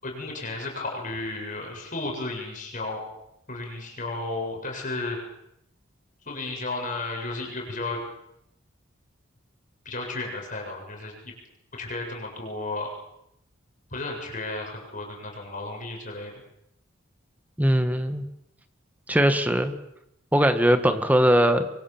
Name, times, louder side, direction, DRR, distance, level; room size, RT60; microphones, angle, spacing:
voice 1, 0.0-3.0 3.5-5.2 6.3-8.0 9.8-11.3 11.8-12.9 13.9-16.3, left 2 dB, 40° left, 0 dB, 7.4 m, -33 dB
voice 2, 17.6-18.2 19.1-19.7 20.3-21.6, equal, 10° right, 9 dB, 1.8 m, -20 dB
27.5 x 24.0 x 7.5 m, 0.80 s
head